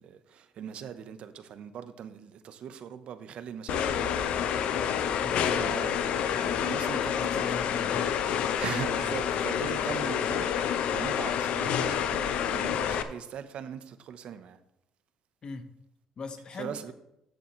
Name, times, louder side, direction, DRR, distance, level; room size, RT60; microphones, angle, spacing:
voice 1, 0.0-4.6 4.9-6.0 6.4-7.5 8.6-14.6 16.6-16.9, right 8 dB, 65° right, 0.9 m, -40 dB
sound 1, 3.7-13.0, left 8 dB, 70° left, 0.7 m, -28 dB
voice 2, 5.2-5.8 6.3-8.1 15.4-15.7 16.2-16.9, left 4 dB, 45° left, 1.2 m, -40 dB
13.5 x 6.9 x 3.1 m
supercardioid pair, 80°, 2 cm